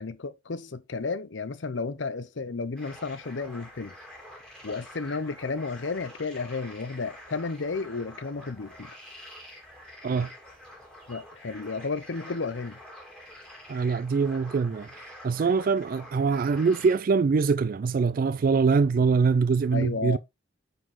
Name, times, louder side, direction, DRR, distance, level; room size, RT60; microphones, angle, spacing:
voice 1, 0.0-3.9 4.6-8.9 11.1-12.8 19.7-20.2, left 4 dB, 85° left, 0.7 m, -32 dB
sound 1, 2.8-17.0, left 1 dB, 5° left, 2.6 m, -47 dB
voice 2, 13.7-20.2, right 5 dB, 50° right, 0.3 m, -24 dB
9.1 x 4.2 x 3.6 m
head